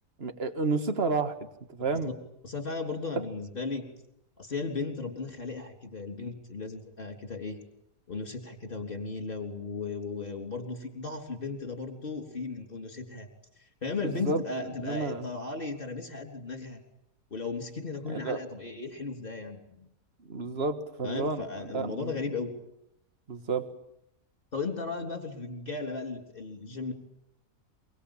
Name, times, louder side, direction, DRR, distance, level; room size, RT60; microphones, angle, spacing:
voice 1, 0.2-1.4 1.7-2.1 14.0-15.3 18.1-18.4 20.2-22.2 23.3-23.7, right 3 dB, 45° right, 9 dB, 1.9 m, -31 dB
voice 2, 2.4-3.9 4.4-7.6 8.1-13.3 13.8-16.8 17.3-19.9 21.0-22.5 24.5-26.9, left 4 dB, 40° left, 5 dB, 3.8 m, -36 dB
24.0 x 23.5 x 8.9 m, 0.79 s
omnidirectional pair, 1.5 m